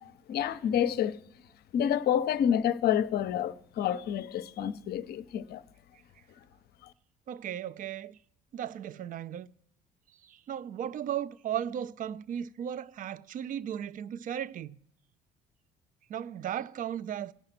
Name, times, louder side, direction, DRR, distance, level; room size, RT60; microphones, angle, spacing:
voice 1, 0.0-1.2 1.7-5.6, left 9 dB, 50° left, 0.6 m, -28 dB
voice 2, 7.3-8.2 8.5-9.5 10.2-14.8 16.1-17.3, right 10 dB, 40° right, 0.4 m, -36 dB
16.5 x 5.7 x 5.6 m
figure-of-eight pair, 55°, 21 cm